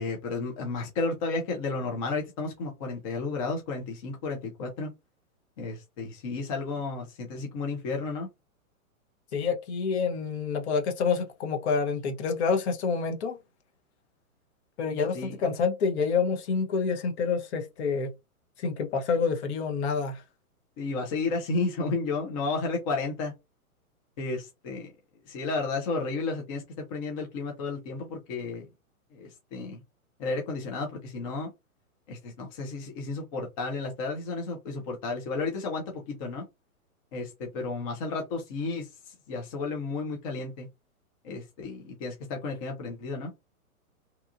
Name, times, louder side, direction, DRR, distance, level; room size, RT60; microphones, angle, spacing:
voice 1, 0.0-4.9 5.6-8.3 15.1-15.5 20.8-23.3 24.2-24.9 25.3-28.7 29.1-29.8 30.2-31.5 32.1-36.4 37.1-40.7 41.2-43.3, left 3 dB, 25° left, 0.5 m, -32 dB
voice 2, 9.3-13.4 14.8-18.1 18.6-20.2, left 5 dB, 50° left, 0.8 m, -27 dB
2.9 x 2.3 x 2.4 m
hypercardioid pair, 135°, 44 cm